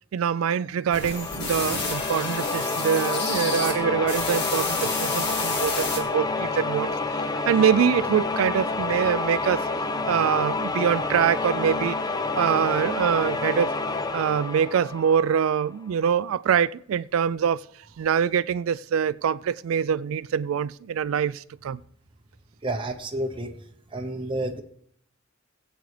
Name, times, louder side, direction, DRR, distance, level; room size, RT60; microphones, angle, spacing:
voice 1, 0.1-9.6 10.1-12.0 12.4-13.8 14.1-17.6 18.0-21.8, right 8 dB, 75° right, 0.3 m, -24 dB
sound 1, 0.9-3.7 4.1-6.0, left 4 dB, 55° left, 1.8 m, -31 dB
sound 2, 1.1-15.7, left 3 dB, 20° left, 0.5 m, -29 dB
voice 2, 22.6-23.5 23.9-24.6, right 1 dB, 25° right, 0.8 m, -30 dB
20.0 x 8.1 x 3.3 m
head